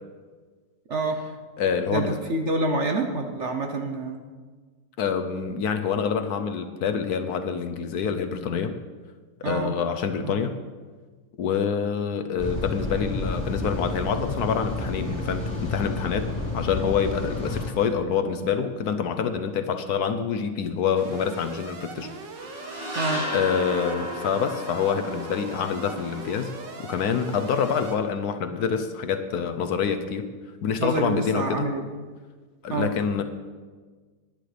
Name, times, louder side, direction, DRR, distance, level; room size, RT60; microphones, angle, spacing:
voice 1, 0.9-1.2 1.9-4.2 9.4-9.7 10.2-10.5 22.9-23.2 30.8-31.9 32.7-32.9, right 2 dB, 50° right, 4 dB, 0.9 m, -27 dB
voice 2, 1.6-2.2 5.0-8.8 9.4-10.5 11.4-16.3 16.5-22.1 22.5-22.9 23.2-26.5 26.8-30.3 30.6-31.7 32.6-33.2, left 6 dB, 65° left, 8 dB, 1.1 m, -26 dB
sound 1, 12.4-17.7, left 2 dB, 25° left, 3.5 m, -30 dB
Alarm, 21.0-27.9, right 4 dB, 80° right, 1.9 m, -41 dB
sound 2, 22.4-28.0, left 1 dB, 25° right, 2.3 m, -36 dB
18.5 x 10.5 x 3.3 m, 1.4 s
omnidirectional pair, 1.9 m